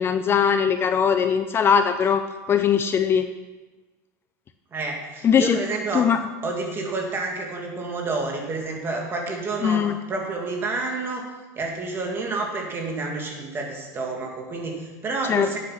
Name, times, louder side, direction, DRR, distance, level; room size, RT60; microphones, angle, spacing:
voice 1, 0.0-2.2 2.5-3.3 5.2-5.6 5.9-6.2 9.6-9.9 15.3-15.6, left 7 dB, 25° left, 9 dB, 0.5 m, -20 dB
voice 2, 4.7-6.1 6.4-11.3 11.6-15.6, right 3 dB, 25° right, 1 dB, 2.4 m, -29 dB
10.0 x 8.5 x 5.9 m, 1.2 s
supercardioid pair, 135°, 9 cm